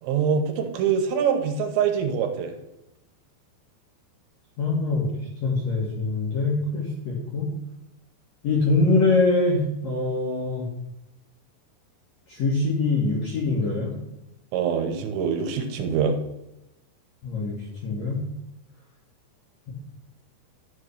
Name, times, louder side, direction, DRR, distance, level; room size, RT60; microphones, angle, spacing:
voice 1, 0.0-2.5 14.5-16.2, right 7 dB, 80° right, 5 dB, 3.1 m, -24 dB
voice 2, 4.6-5.1 5.4-7.5 8.4-10.7 12.3-13.9 17.2-17.5 17.8-18.2, left 3 dB, 55° left, -4 dB, 2.0 m, -23 dB
11.0 x 3.7 x 6.7 m, 0.89 s
omnidirectional pair, 5.2 m